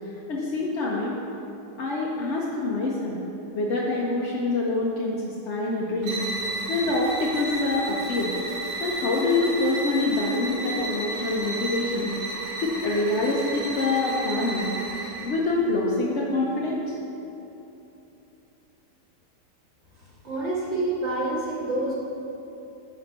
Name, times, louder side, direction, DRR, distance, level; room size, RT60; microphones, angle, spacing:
voice 1, 0.3-1.2 1.8-3.2 3.5-6.2 6.7-8.3 8.8-12.1 12.6-14.7 15.2-17.0, left 2 dB, 55° left, -4 dB, 0.8 m, -26 dB
sound 1, 6.0-15.4, right 2 dB, 75° right, 2.1 m, -33 dB
voice 2, 20.2-21.9, right 2 dB, 40° right, -8 dB, 2.0 m, -27 dB
9.2 x 4.4 x 5.3 m, 3.0 s
omnidirectional pair, 1.9 m